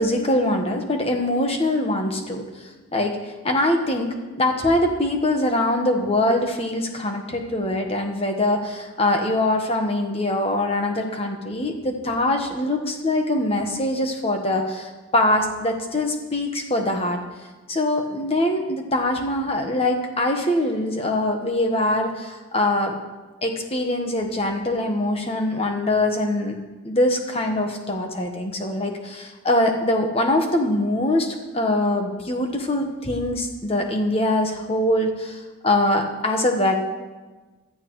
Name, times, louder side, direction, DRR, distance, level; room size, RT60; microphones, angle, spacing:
voice 1, 0.0-2.4 2.9-3.2 3.4-17.2 17.7-23.0 23.4-26.6 26.8-36.8, left 1 dB, 30° left, 3 dB, 1.3 m, -23 dB
15.5 x 13.0 x 3.2 m, 1.2 s
head